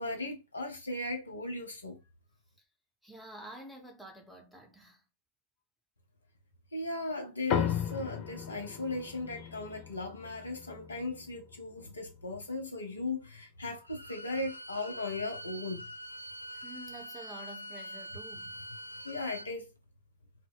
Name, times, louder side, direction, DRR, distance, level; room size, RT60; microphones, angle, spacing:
voice 1, 0.0-2.0 6.7-15.8 19.0-19.7, left 2 dB, 75° left, 0.7 m, -37 dB
voice 2, 3.0-5.0 16.5-18.6, right 1 dB, ahead, 0.8 m, -49 dB
sound 1, 7.5-12.2, left 9 dB, 40° left, 0.4 m, -37 dB
Bowed string instrument, 13.8-19.5, equal, 85° right, 0.3 m, -44 dB
2.1 x 2.1 x 3.4 m
figure-of-eight pair, 90°, 0 cm